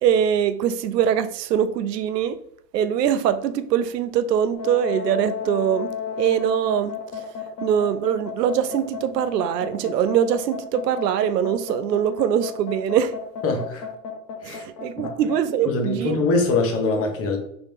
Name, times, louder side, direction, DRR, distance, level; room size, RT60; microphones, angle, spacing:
voice 1, 0.0-2.4 2.7-5.9 6.2-6.9 7.6-13.1 14.5-16.2, right 9 dB, 80° right, 0.6 m, -22 dB
sound 1, 4.5-15.4, left 6 dB, 85° left, 1.0 m, -33 dB
voice 2, 13.4-13.9 14.4-14.6 15.0-15.2 15.6-17.4, left 3 dB, 30° left, 1.2 m, -23 dB
4.0 x 3.8 x 3.4 m
hypercardioid pair, 110°, 48 cm